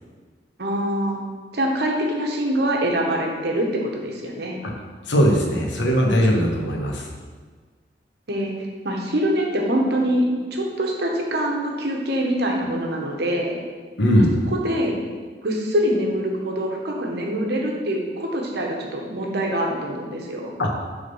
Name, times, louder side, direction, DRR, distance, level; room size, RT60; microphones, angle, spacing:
voice 1, 0.6-1.2 1.5-4.6 8.3-8.5 8.8-13.6 14.5-15.0 15.4-20.5, equal, 65° right, 0 dB, 1.1 m, -24 dB
voice 2, 5.1-7.1 14.0-14.3 20.6-20.7, equal, 85° left, 1 dB, 1.1 m, -19 dB
6.5 x 3.7 x 5.5 m, 1.5 s
head